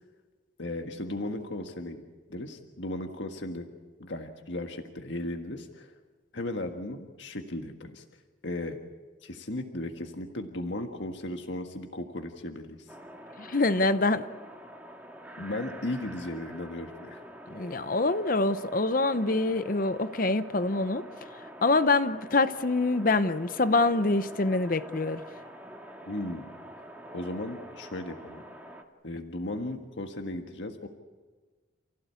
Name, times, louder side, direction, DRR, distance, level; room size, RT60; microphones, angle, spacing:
voice 1, 0.6-2.0 2.3-3.7 4.0-5.9 6.3-8.0 8.4-8.8 9.2-12.9 15.4-17.2 26.1-26.4 27.1-28.4 29.0-30.9, left 1 dB, 65° left, 4 dB, 1.7 m, -36 dB
sound 1, 12.9-28.8, equal, 10° right, 1.9 m, -46 dB
voice 2, 13.4-14.2 17.5-21.0 21.6-25.2, left 3 dB, 45° left, 11 dB, 0.8 m, -25 dB
29.5 x 16.0 x 8.4 m, 1.4 s
head